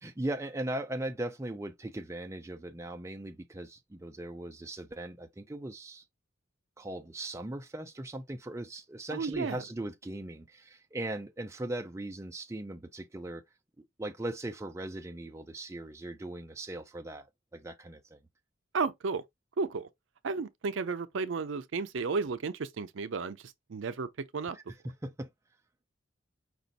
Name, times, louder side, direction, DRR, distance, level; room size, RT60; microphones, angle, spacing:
voice 1, 0.0-6.0 6.8-13.4 13.8-17.3 17.5-18.2 24.5-25.3, right 1 dB, 15° right, 0.4 m, -39 dB
voice 2, 9.1-9.6 18.7-19.2 19.6-19.9 20.2-23.4 23.7-24.6, right 4 dB, 70° right, 0.5 m, -33 dB
5.1 x 2.4 x 4.0 m
head